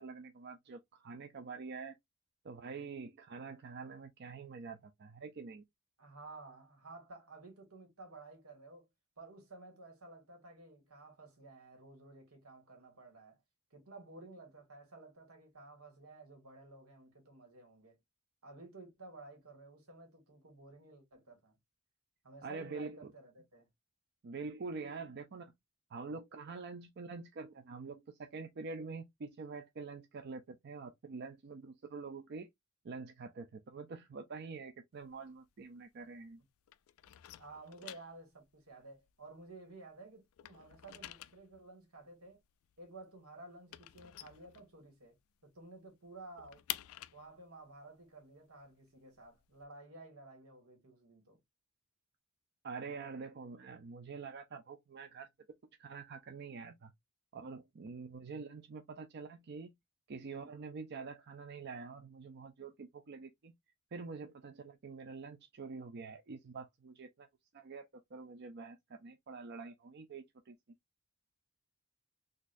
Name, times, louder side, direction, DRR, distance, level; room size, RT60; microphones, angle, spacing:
voice 1, 0.0-2.0 2.4-5.6 22.4-23.1 24.2-25.5 25.9-32.5 32.8-36.4 52.6-55.3 55.8-56.9 57.3-59.7 60.1-63.5 63.9-67.3 67.5-70.6, right 4 dB, 50° right, 0.5 m, -46 dB
voice 2, 6.0-8.9 9.2-13.4 13.7-18.0 18.4-21.6 22.2-23.7 37.4-42.4 42.8-45.1 45.4-46.8 47.1-51.4, right 2 dB, 85° right, 1.7 m, -54 dB
sound 1, 34.9-36.4 36.7-39.9 40.2-45.2 45.5-45.6 45.9-49.6, left 15 dB, 75° left, 0.3 m, -49 dB
4.0 x 2.5 x 2.5 m
head